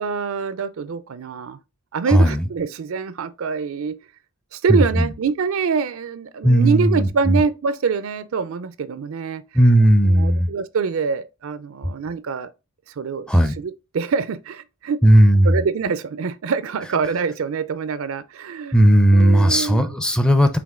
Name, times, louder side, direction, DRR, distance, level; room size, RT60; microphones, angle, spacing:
voice 1, 0.0-1.6 1.9-3.9 4.5-9.4 10.0-12.5 12.9-15.0 15.4-18.8 19.1-19.9, right 5 dB, 65° right, 0.4 m, -25 dB
voice 2, 6.4-7.4 9.6-10.5 13.3-13.6 15.0-15.6 18.7-20.6, right 1 dB, 5° left, 0.4 m, -15 dB
5.1 x 2.9 x 3.6 m
head